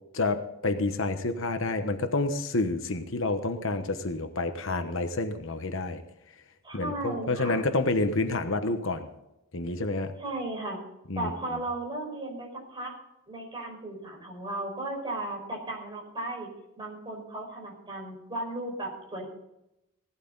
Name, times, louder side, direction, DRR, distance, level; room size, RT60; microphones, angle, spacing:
voice 1, 0.1-6.0 6.7-9.1 9.5-10.1 11.1-11.3, left 2 dB, 60° left, 7 dB, 1.1 m, -29 dB
voice 2, 6.6-7.6 10.2-10.8 11.1-12.9 13.3-16.5 16.8-19.3, right 2 dB, 20° right, -1 dB, 5.2 m, -35 dB
17.5 x 12.5 x 4.0 m, 0.88 s
head